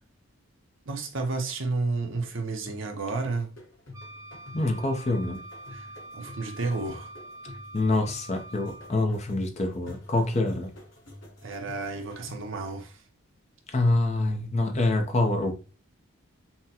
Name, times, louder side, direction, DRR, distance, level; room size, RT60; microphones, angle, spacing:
voice 1, 0.9-3.5 5.7-5.9 6.1-7.1 11.4-13.0, right 3 dB, 65° right, 0.8 m, -31 dB
sound 1, 2.7-12.6, left 2 dB, 60° left, 1.3 m, -48 dB
Wind instrument woodwind instrument, 3.9-9.1, right 1 dB, 15° right, 0.6 m, -45 dB
voice 2, 4.5-5.4 7.7-10.7 13.7-15.6, left 2 dB, 30° left, 0.6 m, -26 dB
5.7 x 2.2 x 2.9 m
head